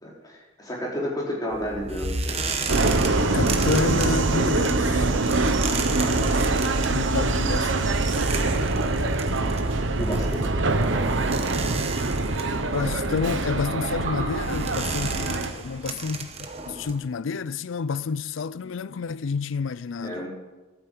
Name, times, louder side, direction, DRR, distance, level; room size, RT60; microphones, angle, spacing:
voice 1, 0.0-2.4 8.8-9.0 9.4-9.5 9.9-10.5 20.0-20.3, equal, 20° left, 3.6 m, -31 dB
sound 1, 1.5-17.0, right 4 dB, 30° right, 1.1 m, -34 dB
Subway metro underground, 2.7-15.5, right 2 dB, 70° right, 1.0 m, -24 dB
voice 2, 3.3-5.1 6.9-8.1 12.6-20.3, left 5 dB, 75° left, 0.5 m, -30 dB
12.5 x 9.0 x 7.7 m
head